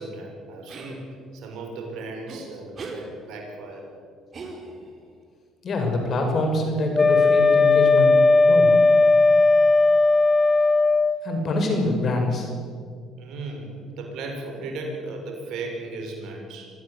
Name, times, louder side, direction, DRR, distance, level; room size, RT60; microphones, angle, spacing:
voice 1, 0.0-3.9 13.2-16.7, right 2 dB, 70° right, 2 dB, 6.4 m, -36 dB
sound 1, 0.7-0.9 2.3-2.4 2.8-3.0 4.3-5.0, right 3 dB, 45° right, 4.9 m, -38 dB
voice 2, 5.6-8.1 8.5-8.8 11.2-12.5, left 2 dB, 50° left, 4 dB, 6.4 m, -25 dB
Wind instrument woodwind instrument, 6.9-11.2, left 3 dB, 25° left, 1.0 m, -17 dB
25.5 x 16.5 x 8.4 m, 2.1 s
supercardioid pair, 70°, 0 cm